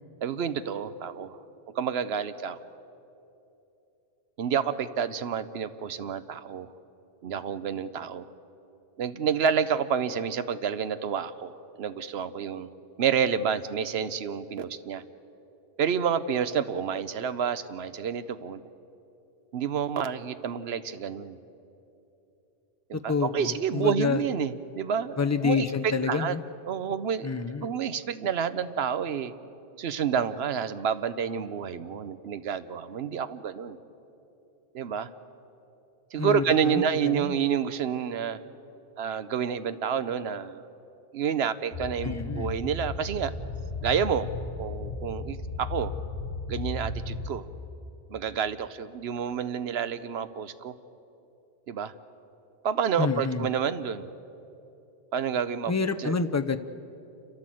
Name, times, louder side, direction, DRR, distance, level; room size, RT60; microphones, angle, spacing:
voice 1, 0.2-1.4 1.7-2.7 4.4-6.7 7.2-8.3 9.0-12.7 13.0-15.0 15.8-18.6 19.5-21.4 22.9-26.4 26.7-27.3 27.6-29.3 29.8-33.8 34.7-35.1 36.1-38.4 39.0-40.6 41.1-43.3 43.8-44.3 44.6-45.9 46.5-47.5 48.1-50.7 51.7-51.9 52.6-54.1 55.1-55.7 56.0-56.1, right 7 dB, 75° right, 13 dB, 1.0 m, -29 dB
voice 2, 22.9-24.2 25.2-26.4 27.2-27.7 36.2-37.3 42.0-42.5 53.0-53.5 55.7-56.6, left 5 dB, 20° left, 9 dB, 0.5 m, -28 dB
sound 1, 41.7-47.4, left 3 dB, 55° left, 4.9 m, -35 dB
28.5 x 13.5 x 7.6 m, 2.9 s
omnidirectional pair, 1.1 m